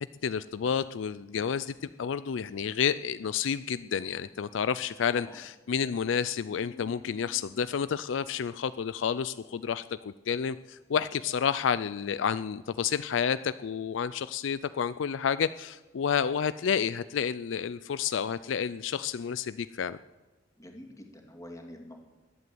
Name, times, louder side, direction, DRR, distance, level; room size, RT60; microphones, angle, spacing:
voice 1, 0.2-20.0, left 7 dB, 70° left, 15 dB, 0.4 m, -30 dB
Piano, 6.5-10.0, left 5 dB, 50° left, 2.2 m, -55 dB
voice 2, 20.6-22.0, left 1 dB, 15° left, 2 dB, 2.4 m, -46 dB
21.0 x 8.3 x 7.8 m, 1.2 s
head